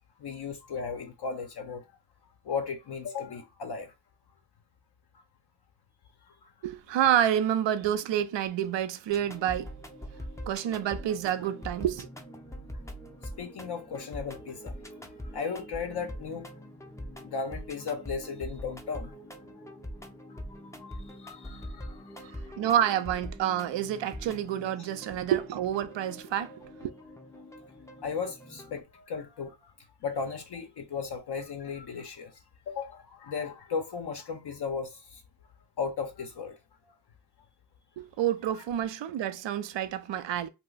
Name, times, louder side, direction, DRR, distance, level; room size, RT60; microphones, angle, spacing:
voice 1, 0.2-1.8 2.4-3.9 6.3-6.4 13.4-14.8 15.3-16.5 17.2-19.1 20.6-22.3 28.0-29.6 30.0-32.3 32.7-35.2 35.8-36.6, left 5 dB, 55° left, 0.7 m, -36 dB
voice 2, 6.6-9.7 10.5-12.1 22.2-26.5 26.8-26.9 38.0-40.5, right 10 dB, 65° right, 0.5 m, -28 dB
sound 1, 9.1-28.8, equal, 5° left, 0.5 m, -43 dB
2.4 x 2.1 x 3.8 m
cardioid pair, 50°, 48 cm